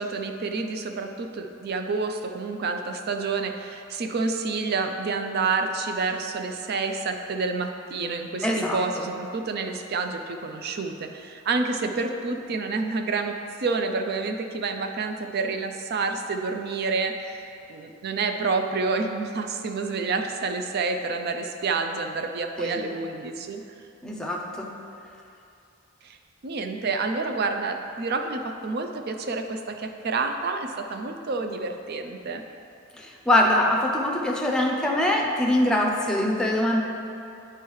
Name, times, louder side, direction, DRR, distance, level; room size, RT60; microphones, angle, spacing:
voice 1, 0.0-8.5 8.7-13.4 13.6-23.6 26.0-26.2 26.4-32.4, right 4 dB, 50° right, 5 dB, 0.4 m, -28 dB
voice 2, 8.4-9.1 22.6-22.8 24.0-24.7 33.0-36.8, left 1 dB, 5° left, -1 dB, 0.6 m, -23 dB
8.7 x 4.5 x 3.1 m, 2.6 s
head